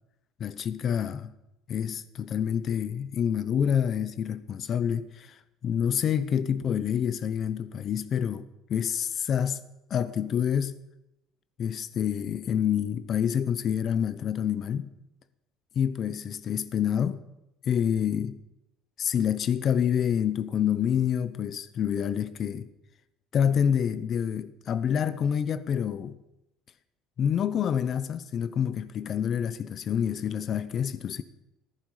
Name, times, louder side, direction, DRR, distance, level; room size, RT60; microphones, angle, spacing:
voice 1, 0.4-1.3 1.7-9.6 9.9-10.8 11.6-14.9 15.8-17.2 17.6-18.4 19.0-22.7 23.3-26.2 27.2-31.2, left 8 dB, 40° left, 0.7 m, -27 dB
15.5 x 14.0 x 4.9 m
cardioid pair, 145°, 0 cm